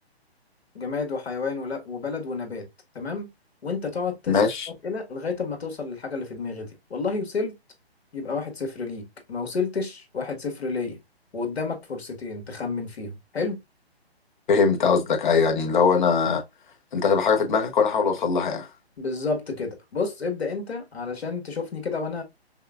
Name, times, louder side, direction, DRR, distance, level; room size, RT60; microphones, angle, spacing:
voice 1, 0.7-2.7 3.0-3.3 3.6-4.4 4.8-7.5 8.1-11.0 11.3-13.6 19.0-22.2, left 4 dB, 75° left, 1.8 m, -30 dB
voice 2, 4.3-4.7 14.5-16.4 16.9-18.7, left 5 dB, 50° left, 1.1 m, -21 dB
5.5 x 2.4 x 2.4 m
hypercardioid pair, 150°, 32 cm